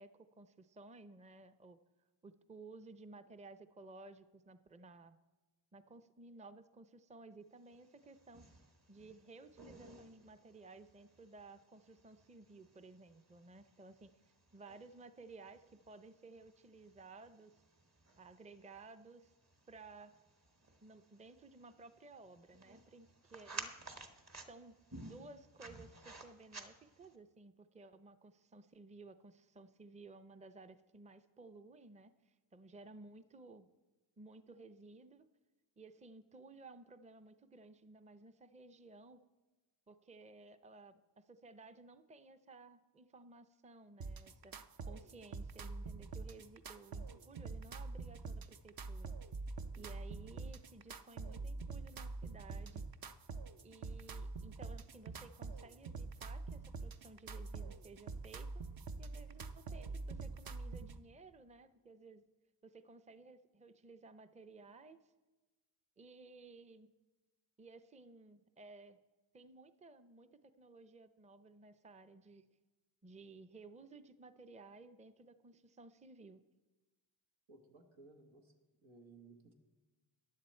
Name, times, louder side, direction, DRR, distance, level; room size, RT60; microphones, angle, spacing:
voice 1, 0.0-1.8 2.2-5.2 5.7-8.4 8.9-14.1 14.5-17.6 18.2-19.3 19.7-20.1 20.8-23.7 24.0-24.1 24.5-24.8 25.0-33.7 34.2-35.3 35.8-39.2 39.9-49.1 49.7-52.8 53.6-58.6 59.0-62.2 62.6-65.0 66.0-66.9 67.6-69.0 69.3-72.5 73.0-76.4, right 3 dB, 15° right, 11 dB, 0.6 m, -56 dB
sound 1, 7.7-27.2, right 3 dB, 35° right, 1.2 m, -55 dB
sound 2, 44.0-61.0, right 3 dB, 50° right, 0.7 m, -45 dB
voice 2, 77.5-78.5 78.8-79.5, right 3 dB, 90° right, 3 dB, 1.8 m, -59 dB
15.0 x 10.0 x 4.4 m, 1.2 s
cardioid pair, 70°, 46 cm